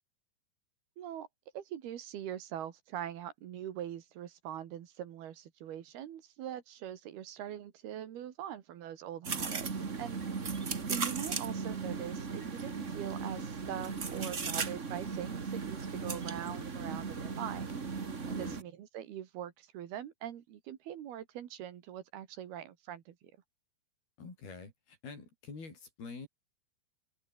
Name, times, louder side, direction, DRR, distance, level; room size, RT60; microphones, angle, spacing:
voice 1, 1.0-1.3 1.5-10.2 10.9-17.7 18.3-23.3, right 10 dB, 75° right, 3.7 m, -42 dB
sound 1, 9.2-18.6, right 5 dB, 90° right, 0.6 m, -37 dB
voice 2, 18.3-18.6 24.2-26.3, left 4 dB, 65° left, 9.3 m, -46 dB
open air
omnidirectional pair, 4.7 m